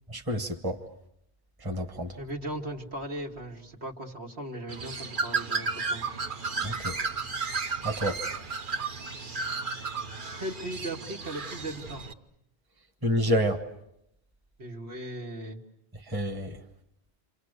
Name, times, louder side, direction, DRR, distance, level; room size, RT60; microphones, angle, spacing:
voice 1, 0.1-0.8 1.6-2.1 6.6-7.0 7.8-8.2 13.0-13.6 16.1-16.6, equal, 20° right, 1.6 m, -28 dB
voice 2, 2.2-6.1 10.4-12.0 14.6-15.6, right 1 dB, 75° right, 2.7 m, -37 dB
Bird, 4.7-12.1, right 4 dB, 50° right, 1.3 m, -33 dB
29.5 x 26.5 x 6.7 m
omnidirectional pair, 1.1 m